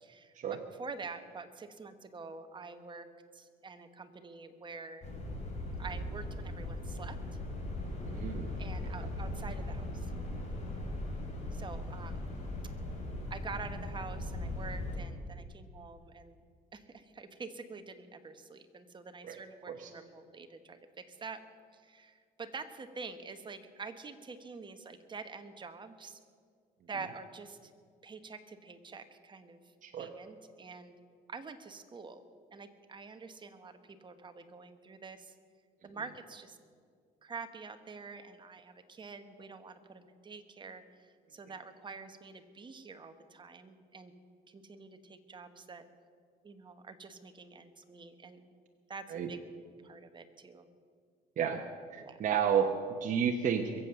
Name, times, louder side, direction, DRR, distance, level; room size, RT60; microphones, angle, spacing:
voice 1, 0.0-0.3 0.8-3.1 3.3-5.1 5.8-7.2 8.6-10.1 11.5-12.2 13.3-16.4 16.7-21.4 21.7-26.2 26.9-27.7 28.0-29.7 30.0-30.9 31.3-32.2 32.5-35.3 35.8-36.6 37.2-44.1 44.5-45.9 46.4-48.4 48.9-49.4 49.8-50.7 52.0-52.2, right 4 dB, 30° right, 8 dB, 1.1 m, -47 dB
sound 1, 5.0-15.0, left 1 dB, 40° left, 4.3 m, -39 dB
voice 2, 8.0-8.6 9.0-9.1 19.2-19.4 19.7-19.9 29.8-30.1 49.1-49.3 51.4-51.6 51.9-53.8, right 7 dB, 50° right, 3 dB, 1.1 m, -31 dB
22.0 x 7.9 x 6.9 m, 2.1 s
cardioid pair, 110°, 17 cm